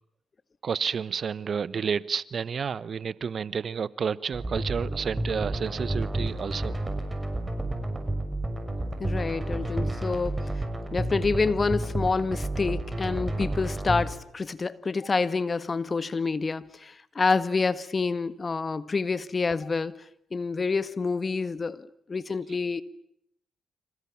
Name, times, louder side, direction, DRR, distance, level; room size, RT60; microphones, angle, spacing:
voice 1, 0.6-6.8, right 6 dB, 55° right, 1.0 m, -30 dB
sound 1, 4.3-14.1, right 1 dB, 20° right, 6.5 m, -31 dB
voice 2, 9.0-10.5 10.9-19.9 20.3-22.8, left 4 dB, 40° left, 1.6 m, -28 dB
29.5 x 27.5 x 7.2 m
hypercardioid pair, 45°, 0 cm